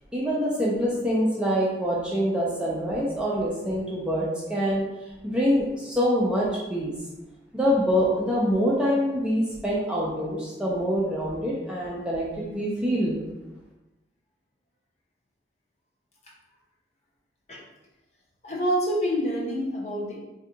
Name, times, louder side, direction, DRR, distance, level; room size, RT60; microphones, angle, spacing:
voice 1, 0.1-4.8 5.2-6.9 7.5-13.2, equal, 5° right, -6 dB, 0.4 m, -25 dB
voice 2, 18.4-20.2, equal, 35° left, -4 dB, 0.7 m, -27 dB
2.7 x 2.3 x 3.8 m, 1.0 s
head